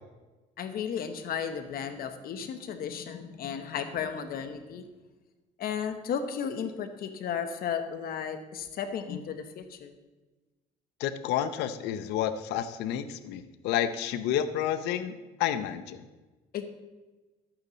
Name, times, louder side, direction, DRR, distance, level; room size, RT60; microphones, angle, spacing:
voice 1, 0.6-4.9 5.6-9.9 16.5-16.6, left 7 dB, 60° left, 8 dB, 1.1 m, -34 dB
voice 2, 11.0-16.1, left 10 dB, 90° left, 11 dB, 0.8 m, -30 dB
13.0 x 8.8 x 4.0 m, 1.2 s
cardioid pair, 110°, 17 cm